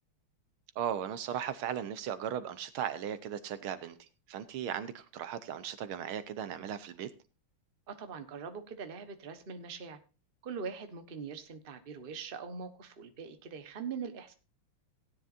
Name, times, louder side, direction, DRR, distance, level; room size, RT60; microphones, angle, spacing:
voice 1, 0.8-7.1, right 9 dB, 75° right, 12 dB, 1.7 m, -37 dB
voice 2, 7.9-10.0 10.4-14.3, right 6 dB, 30° right, 8 dB, 1.1 m, -42 dB
17.5 x 10.0 x 2.6 m, 0.32 s
omnidirectional pair, 2.4 m